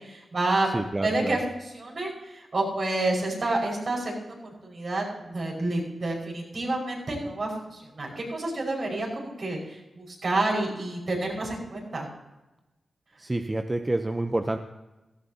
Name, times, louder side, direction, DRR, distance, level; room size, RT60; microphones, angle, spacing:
voice 1, 0.0-4.4 4.6-12.1, right 2 dB, 60° right, -2 dB, 5.5 m, -29 dB
voice 2, 0.7-1.4 13.2-14.6, right 2 dB, 25° right, 6 dB, 0.8 m, -28 dB
17.0 x 14.0 x 2.9 m, 1.0 s
cardioid pair, 50°, 0 cm